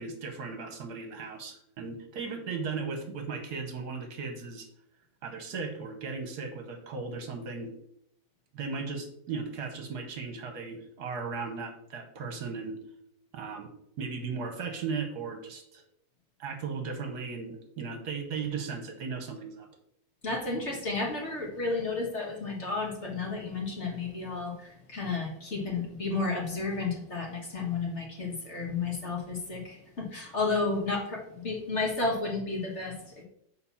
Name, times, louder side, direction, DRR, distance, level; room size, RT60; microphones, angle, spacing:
voice 1, 0.0-4.7 5.2-7.7 8.5-12.8 13.3-15.8 16.4-19.7, right 5 dB, 65° right, 5 dB, 1.4 m, -36 dB
voice 2, 20.2-33.2, left 3 dB, 40° left, -1 dB, 1.7 m, -32 dB
6.6 x 4.3 x 5.7 m, 0.74 s
omnidirectional pair, 2.0 m